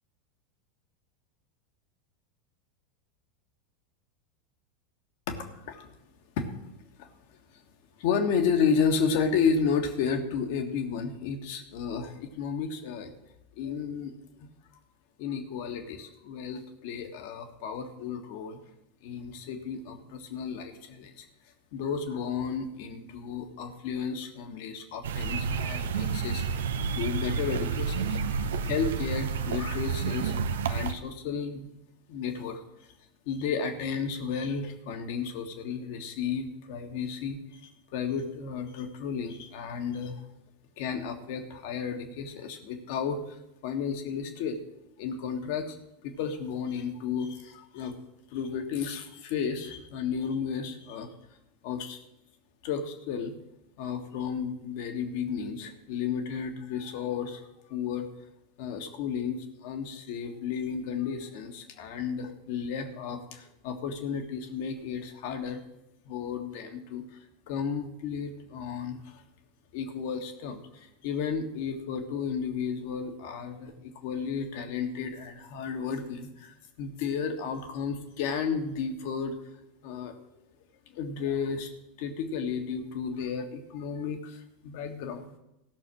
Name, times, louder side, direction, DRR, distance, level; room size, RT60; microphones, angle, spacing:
voice 1, 5.3-5.9 6.4-6.6 7.0-7.1 8.0-13.1 13.6-14.5 15.2-18.6 19.0-21.3 21.7-26.4 26.9-30.3 30.7-31.7 32.1-32.6 33.2-40.2 40.8-43.4 43.6-44.6 45.0-45.8 46.0-48.0 48.3-51.1 51.6-52.0 52.6-53.3 53.8-57.4 57.7-58.1 58.6-65.6 66.0-67.0 67.5-69.2 69.7-79.4 79.8-80.2 80.9-81.7 82.0-85.3, left 6 dB, 50° left, 5 dB, 1.6 m, -32 dB
sound 1, 25.0-30.9, right 6 dB, 65° right, 0.6 m, -30 dB
15.5 x 6.4 x 6.1 m, 0.88 s
figure-of-eight pair, 85°, 0 cm